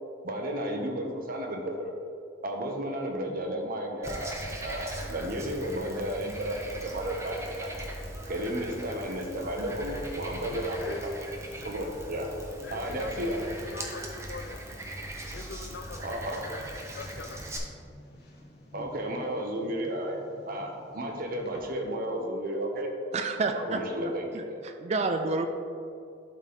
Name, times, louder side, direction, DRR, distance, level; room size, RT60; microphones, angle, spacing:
voice 1, 0.2-1.9 2.4-7.8 8.3-11.0 11.5-12.3 12.7-13.4 16.0-16.4 18.7-22.9 23.5-24.6, right 1 dB, 55° right, 2 dB, 1.0 m, -33 dB
Frog, 4.0-17.6, right 1 dB, 15° right, 0.9 m, -40 dB
voice 2, 10.5-11.2 11.5-11.7 12.6-14.8 15.3-16.6 17.0-17.6, left 4 dB, 80° left, 4 dB, 0.4 m, -43 dB
sound 1, 16.3-22.0, left 1 dB, 60° left, 1.4 m, -51 dB
voice 3, 23.1-23.8 24.3-25.5, right 3 dB, 35° right, 6 dB, 0.4 m, -29 dB
11.5 x 4.1 x 3.6 m, 2.4 s
head